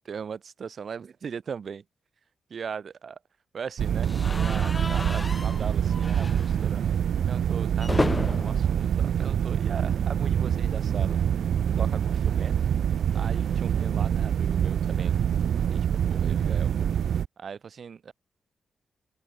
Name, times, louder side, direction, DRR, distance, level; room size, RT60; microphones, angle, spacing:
voice 1, 0.0-1.8 2.5-3.2 3.5-6.8 7.3-11.2 11.8-12.5 13.1-15.4 15.7-16.7 17.4-18.1, right 6 dB, 50° right, 7.9 m, -39 dB
sound 1, 3.8-17.3, right 9 dB, 85° right, 3.1 m, -25 dB
sound 2, 4.0-10.1 10.4-10.6 10.8-10.9 12.2-14.5, left 2 dB, 15° left, 3.7 m, -35 dB
open air
wide cardioid pair, 175°, 0 cm